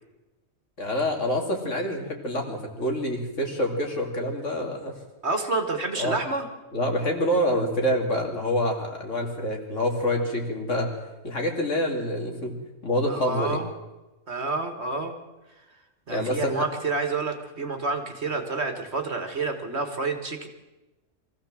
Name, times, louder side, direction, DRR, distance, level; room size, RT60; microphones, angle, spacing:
voice 1, 0.8-4.9 6.0-6.2 6.7-10.9 11.2-12.6 12.8-13.6 16.1-16.6, equal, 60° left, 2 dB, 3.3 m, -26 dB
voice 2, 5.2-6.5 13.1-13.7 14.3-15.2 16.1-20.5, right 3 dB, 50° right, 6 dB, 2.0 m, -29 dB
24.0 x 15.0 x 7.6 m, 1.1 s
omnidirectional pair, 1.5 m